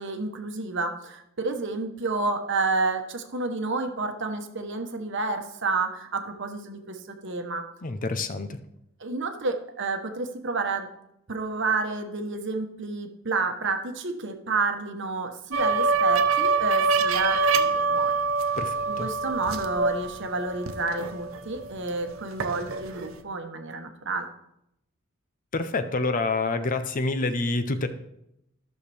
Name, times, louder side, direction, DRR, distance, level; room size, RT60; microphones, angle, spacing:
voice 1, 0.0-7.6 9.0-10.9 11.3-18.1 18.8-24.3, right 3 dB, 60° right, 6 dB, 1.1 m, -30 dB
voice 2, 7.8-8.6 18.6-19.1 25.5-27.9, left 3 dB, 40° left, 9 dB, 0.6 m, -27 dB
sound 1, 15.5-21.7 22.1-23.1, right 4 dB, 80° right, 0.8 m, -25 dB
13.5 x 6.5 x 3.4 m, 0.82 s
head